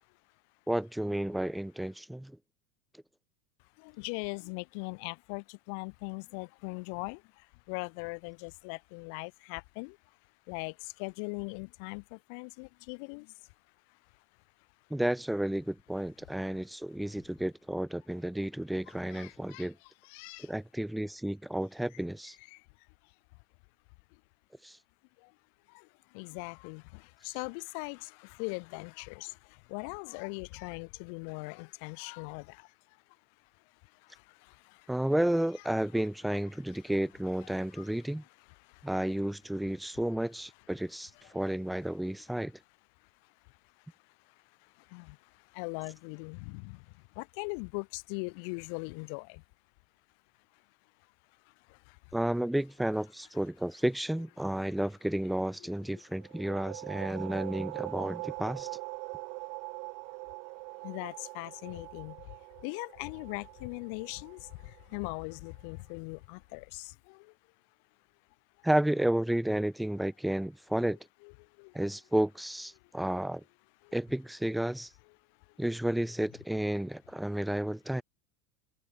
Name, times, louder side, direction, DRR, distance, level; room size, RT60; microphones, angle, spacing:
voice 1, 0.7-2.3 14.9-19.7 20.4-22.4 24.6-24.8 34.9-38.2 38.8-42.5 52.1-58.7 68.6-71.0 71.7-73.4 73.9-74.9 75.6-78.0, right 1 dB, ahead, 0.7 m, -32 dB
voice 2, 3.8-7.2 7.7-10.0 10.5-13.3 19.1-19.7 20.0-20.5 22.5-22.6 26.1-29.3 29.7-32.6 37.4-37.9 44.9-45.2 45.6-46.8 47.2-49.4 55.9-56.0 60.8-62.2 62.6-64.5 64.9-67.2 70.8-70.9 71.2-71.3 71.6-71.9, left 38 dB, 50° left, 3.6 m, -40 dB
sound 1, 56.2-65.6, right 40 dB or more, 45° right, 6.5 m, -43 dB
supercardioid pair, 175°, 0 cm